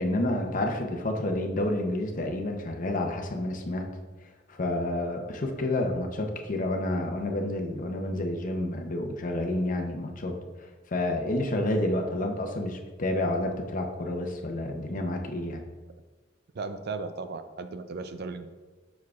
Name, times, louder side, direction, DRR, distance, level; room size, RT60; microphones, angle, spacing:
voice 1, 0.0-3.9 4.5-15.6, left 1 dB, 45° left, 2 dB, 0.7 m, -29 dB
voice 2, 16.5-18.5, right 4 dB, 55° right, 10 dB, 0.5 m, -36 dB
7.1 x 6.1 x 2.4 m, 1.3 s
head